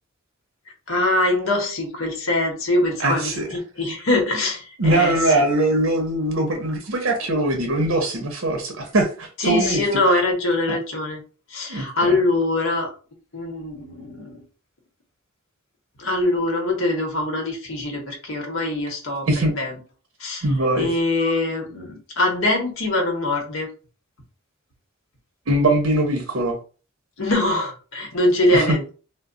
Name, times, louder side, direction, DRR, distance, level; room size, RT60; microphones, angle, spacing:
voice 1, 0.9-3.4 3.8-5.4 9.4-11.2 11.5-12.9 13.3-14.4 16.0-19.7 20.2-20.4 20.8-23.7 27.2-28.9, left 2 dB, 70° left, 1 dB, 0.9 m, -23 dB
voice 2, 3.0-3.5 4.8-9.8 10.7-10.8 11.7-12.2 19.3-19.5 20.4-20.9 25.5-26.6 28.5-28.8, right 1 dB, 75° right, 3 dB, 0.7 m, -21 dB
2.2 x 2.0 x 3.7 m, 0.36 s
head